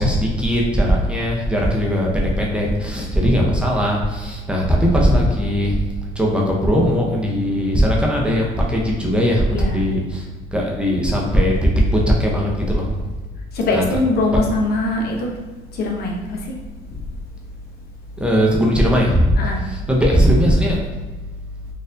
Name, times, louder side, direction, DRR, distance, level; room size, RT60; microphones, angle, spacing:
voice 1, 0.0-5.8 6.2-10.2 10.5-12.9 13.7-13.8 14.3-14.4 18.2-19.3 19.6-20.8, equal, 5° right, -3 dB, 0.6 m, -18 dB
voice 2, 13.5-15.3 15.7-16.5 19.4-19.6, left 2 dB, 65° left, 0 dB, 0.7 m, -22 dB
4.1 x 2.5 x 2.5 m, 1.2 s
cardioid pair, 110°, 17 cm